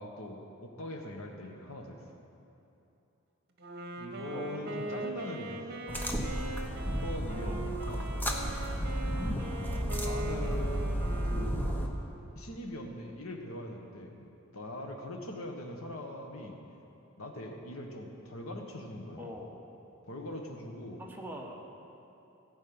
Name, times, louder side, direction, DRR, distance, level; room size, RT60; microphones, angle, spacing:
voice 1, 0.0-2.0 4.0-5.8 6.7-7.9 8.9-9.2 10.0-10.9 11.2-11.7 12.3-16.6 17.2-19.4 20.1-21.0, left 1 dB, 85° left, 3 dB, 1.4 m, -42 dB
Wind instrument woodwind instrument, 3.6-12.2, right 2 dB, 50° right, 1.3 m, -41 dB
voice 2, 4.3-5.0 7.4-7.7 19.2-19.6 21.0-21.6, equal, 10° right, -2 dB, 1.3 m, -44 dB
sound 1, 5.9-11.9, equal, 10° left, 0.9 m, -33 dB
16.0 x 5.5 x 8.8 m, 2.9 s
head